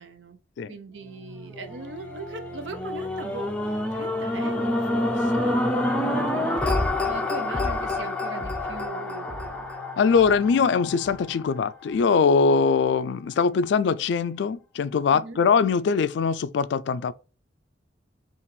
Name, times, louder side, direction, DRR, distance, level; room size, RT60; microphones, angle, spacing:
voice 1, 0.0-0.4 0.7-5.6 5.9-6.7 7.0-9.7 15.1-15.5, right 3 dB, 80° right, 0.6 m, -40 dB
Organ, 0.9-11.8, right 3 dB, 35° right, 1.2 m, -48 dB
sound 1, 1.5-11.8 12.4-12.5, left 1 dB, 5° left, 0.5 m, -28 dB
voice 2, 10.0-17.1, left 5 dB, 70° left, 0.3 m, -22 dB
5.7 x 2.4 x 3.2 m
head